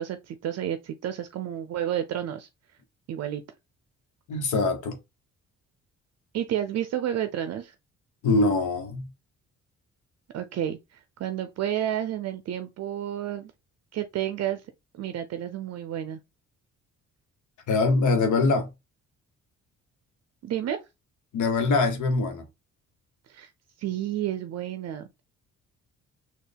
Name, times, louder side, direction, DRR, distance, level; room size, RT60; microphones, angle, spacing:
voice 1, 0.0-2.5 3.1-3.4 6.3-7.7 10.3-13.5 13.9-14.6 14.9-16.2 20.4-20.8 23.3-23.5 23.8-25.1, right 11 dB, 60° right, 0.5 m, -30 dB
voice 2, 4.3-5.0 8.2-9.1 17.7-18.7 21.3-22.4, left 3 dB, 75° left, 1.1 m, -23 dB
4.2 x 2.4 x 3.4 m
cardioid pair, 90°, 30 cm